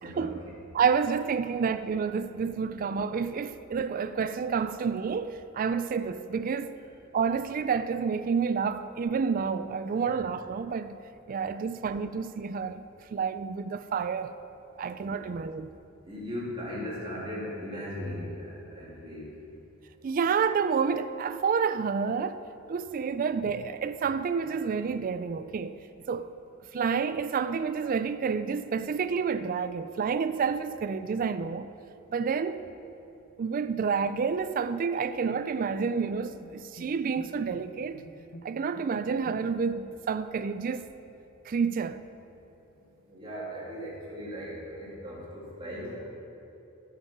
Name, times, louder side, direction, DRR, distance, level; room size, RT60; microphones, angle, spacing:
voice 1, 0.7-6.8 7.1-11.0 11.3-12.8 13.1-14.3 14.8-15.7 20.0-22.4 22.7-25.8 26.1-26.3 26.7-31.7 32.1-32.6 33.4-38.0 38.4-40.9 41.5-42.0, right 6 dB, 40° right, 0.3 m, -29 dB
voice 2, 16.1-18.3 18.7-19.3 43.1-46.0, equal, 25° right, 2.7 m, -38 dB
Bowed string instrument, 35.0-39.8, equal, 70° left, 0.9 m, -49 dB
11.0 x 7.6 x 5.9 m
head